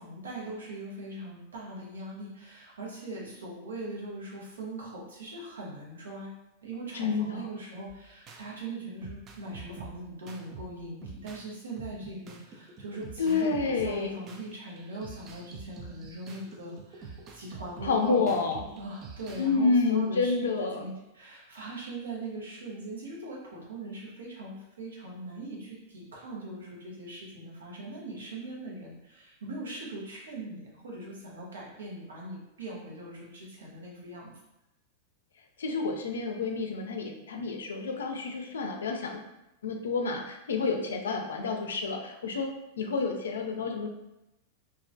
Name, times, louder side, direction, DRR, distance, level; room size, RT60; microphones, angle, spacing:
voice 1, 0.0-6.3 6.6-34.3, right 2 dB, 85° right, -4 dB, 0.8 m, -41 dB
voice 2, 6.9-7.4 13.2-14.2 17.8-18.7 19.4-20.9 35.6-39.2 39.6-42.5 42.8-43.9, left 4 dB, 85° left, 4 dB, 0.3 m, -29 dB
sound 1, 7.9-8.4 9.0-11.5 11.8-19.5, right 5 dB, 35° right, 0.4 m, -47 dB
2.3 x 2.1 x 2.6 m, 0.94 s
hypercardioid pair, 105°, 0 cm